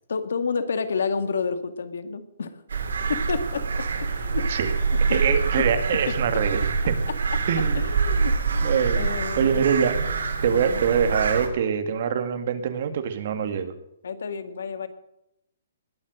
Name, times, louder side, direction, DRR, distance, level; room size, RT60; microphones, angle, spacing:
voice 1, 0.1-2.6 3.1-3.6 4.0-4.5 5.1-5.2 5.6-5.7 6.1-6.2 7.1-7.2 7.8-9.7 10.4-10.8 14.0-14.9, left 5 dB, 85° left, 10 dB, 2.0 m, -30 dB
sound 1, 2.7-11.5, right 4 dB, 85° right, 3.1 m, -25 dB
voice 2, 5.1-7.0 7.5-7.8 8.6-9.1 9.4-10.0 10.4-13.7, right 7 dB, 50° right, 8 dB, 2.0 m, -24 dB
20.5 x 7.7 x 7.7 m, 0.81 s
hypercardioid pair, 165°, 0 cm